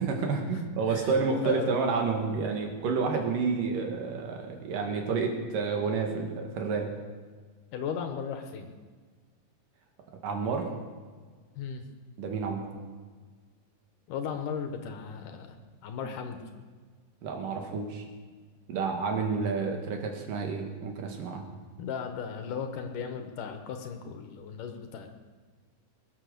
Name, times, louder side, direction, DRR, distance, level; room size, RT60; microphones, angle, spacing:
voice 1, 0.0-6.9 10.2-10.7 12.2-12.7 17.2-18.0 18.7-21.5, right 4 dB, 85° right, 3 dB, 3.6 m, -30 dB
voice 2, 0.9-1.8 7.7-8.7 11.6-11.8 14.1-15.5 15.8-16.5 21.8-25.1, left 6 dB, 80° left, 6 dB, 2.8 m, -36 dB
21.5 x 8.9 x 6.8 m, 1.5 s
omnidirectional pair, 3.7 m